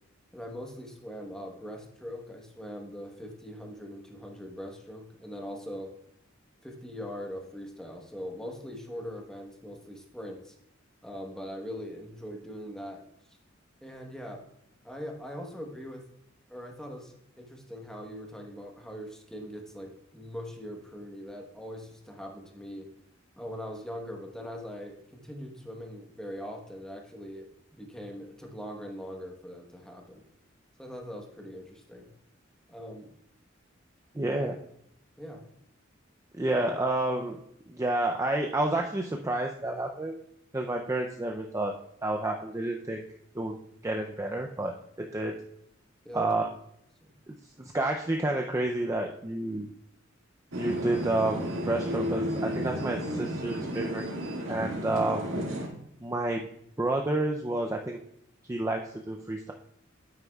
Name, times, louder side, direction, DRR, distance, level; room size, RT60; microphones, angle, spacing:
voice 1, 0.3-5.9 6.6-10.5 11.0-13.0 13.8-14.4 14.8-16.0 16.5-22.9 23.4-30.2 30.8-32.1 32.7-33.1 34.4-34.5 35.2-35.4 46.0-46.5 47.0-47.1, equal, 5° left, 1 dB, 1.1 m, -41 dB
voice 2, 34.1-34.6 36.4-37.4 37.7-40.2 40.5-43.0 43.3-43.6 43.8-45.4 46.1-46.5 47.6-49.7 50.6-54.1 54.5-55.5 56.0-56.4 56.8-58.0 58.5-59.5, right 2 dB, 15° right, 1 dB, 0.5 m, -30 dB
sound 1, 50.5-55.7, equal, 85° right, 1.9 m, -33 dB
9.3 x 9.1 x 2.3 m, 0.74 s
head